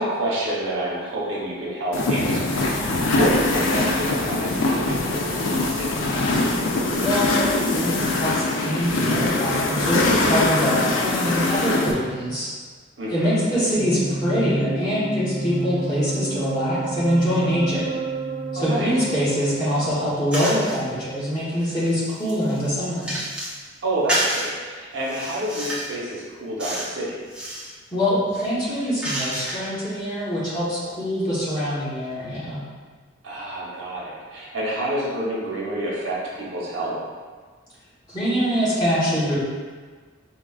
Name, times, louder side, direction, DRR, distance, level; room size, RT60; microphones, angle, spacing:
voice 1, 0.0-6.1 13.0-13.3 18.5-18.9 23.8-27.1 33.2-37.0, right 1 dB, 75° right, -6 dB, 0.9 m, -28 dB
sound 1, 1.9-11.9, left 2 dB, 80° left, 0.4 m, -22 dB
voice 2, 7.0-12.5 13.1-17.8 18.5-23.1 27.9-32.6 38.1-39.3, equal, 20° left, -11 dB, 1.1 m, -24 dB
sound 2, 13.8-20.3, right 3 dB, 55° right, 0.4 m, -30 dB
sound 3, 20.3-20.8 21.4-23.6 24.1-24.5 25.0-26.0 26.6-26.9 27.2-27.7 28.3-29.7, equal, 5° right, 0.6 m, -29 dB
4.8 x 2.3 x 2.3 m, 1.5 s
head